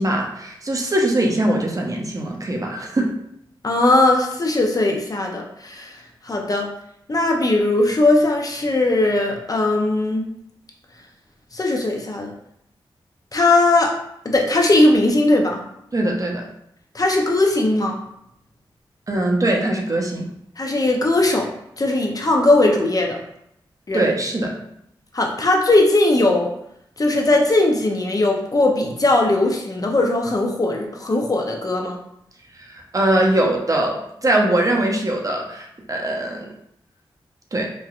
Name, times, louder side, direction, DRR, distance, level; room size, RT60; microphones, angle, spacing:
voice 1, 0.0-3.1 15.9-16.4 19.1-20.3 23.9-24.5 32.7-36.5 37.5-37.7, right 1 dB, 35° right, 0 dB, 0.6 m, -21 dB
voice 2, 3.6-6.7 7.1-10.2 11.5-12.3 13.3-13.9 14.2-15.6 16.9-18.0 20.6-21.5 21.8-23.2 23.9-24.0 25.1-26.5 27.0-32.0, left 2 dB, 40° left, 1 dB, 0.6 m, -19 dB
3.0 x 2.3 x 2.4 m, 0.74 s
cardioid pair, 50°, 9 cm